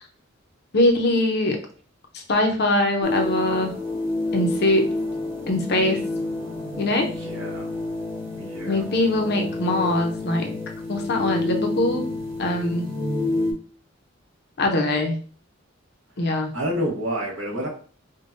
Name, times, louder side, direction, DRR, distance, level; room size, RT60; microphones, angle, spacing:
voice 1, 0.7-1.6 2.1-3.7 4.3-4.9 5.5-6.0 6.8-7.1 8.7-10.6 10.9-12.0 12.4-12.8 14.6-15.1 16.2-16.5, left 1 dB, 55° left, 3 dB, 0.7 m, -22 dB
sound 1, 3.0-13.5, left 2 dB, 15° right, 1.0 m, -29 dB
voice 2, 7.1-7.7 8.4-8.8 16.2-17.7, equal, 70° right, -2 dB, 1.2 m, -29 dB
5.1 x 2.2 x 2.6 m, 0.42 s
head